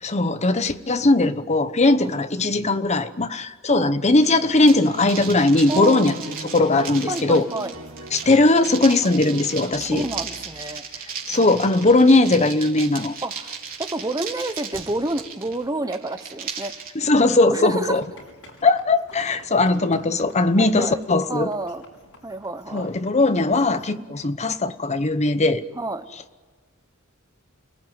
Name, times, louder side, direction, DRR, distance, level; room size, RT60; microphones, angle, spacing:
voice 1, 0.0-6.1 6.5-7.5 8.1-10.1 11.3-13.1 16.9-18.0 18.6-21.5 22.7-25.6, left 2 dB, 30° left, 10 dB, 1.0 m, -19 dB
sound 1, 4.2-16.9, right 6 dB, 45° right, 4.1 m, -36 dB
sound 2, 4.2-10.9, right 1 dB, 80° right, 3.2 m, -40 dB
voice 2, 5.7-6.2 6.9-7.8 9.9-10.8 13.2-13.5 13.8-16.7 17.4-18.0 19.7-19.9 20.6-21.0 21.3-21.8 22.2-22.9 25.7-26.0, right 2 dB, 15° right, 9 dB, 1.1 m, -29 dB
sound 3, 17.9-23.9, left 1 dB, 85° left, 6.1 m, -49 dB
29.0 x 18.5 x 9.2 m, 1.4 s
head